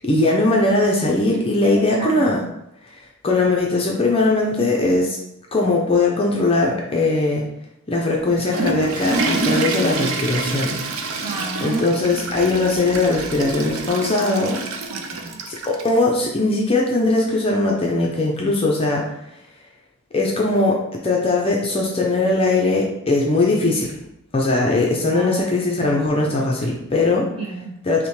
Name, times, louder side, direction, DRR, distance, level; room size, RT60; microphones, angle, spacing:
voice 1, 0.0-2.4 3.2-5.2 5.5-7.4 7.9-10.8 11.6-14.7 15.4-19.0 20.1-23.9 24.3-27.3 27.8-28.1, left 2 dB, 25° left, -2 dB, 0.5 m, -20 dB
voice 2, 1.6-2.5 11.2-12.0 14.9-15.4 25.1-25.4 27.3-27.7, right 2 dB, 25° right, -3 dB, 0.8 m, -31 dB
Water / Toilet flush, 8.1-16.0, right 3 dB, 65° right, 0.5 m, -27 dB
5.9 x 2.1 x 3.1 m, 0.82 s
head